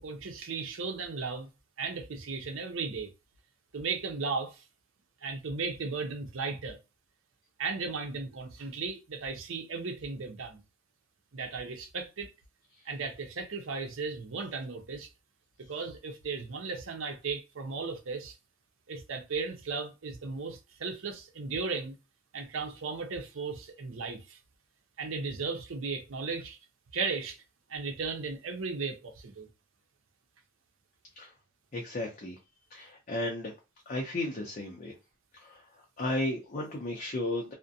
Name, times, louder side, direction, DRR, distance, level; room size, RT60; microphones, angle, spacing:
voice 1, 0.0-1.5 1.8-3.1 3.7-4.6 5.2-6.8 7.6-10.6 11.3-12.3 12.9-15.1 15.7-18.4 18.9-21.9 22.3-24.4 25.0-26.6 26.9-27.4 27.7-29.5, right 4 dB, 90° right, 0.6 m, -36 dB
voice 2, 31.7-32.4 32.7-33.5 33.9-34.9 35.3-35.6 36.0-37.5, left 1 dB, 40° left, 0.5 m, -34 dB
2.5 x 2.1 x 2.6 m
head